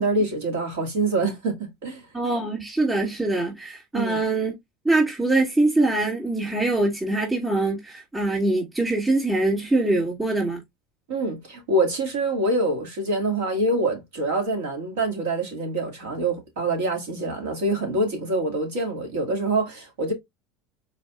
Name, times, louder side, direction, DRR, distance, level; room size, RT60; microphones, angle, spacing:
voice 1, 0.0-2.0 3.9-4.2 11.1-20.1, right 2 dB, 85° right, 2.3 m, -25 dB
voice 2, 2.1-4.5 4.8-10.6, right 2 dB, 15° right, 2.8 m, -23 dB
5.0 x 4.0 x 2.5 m
supercardioid pair, 100°, 0 cm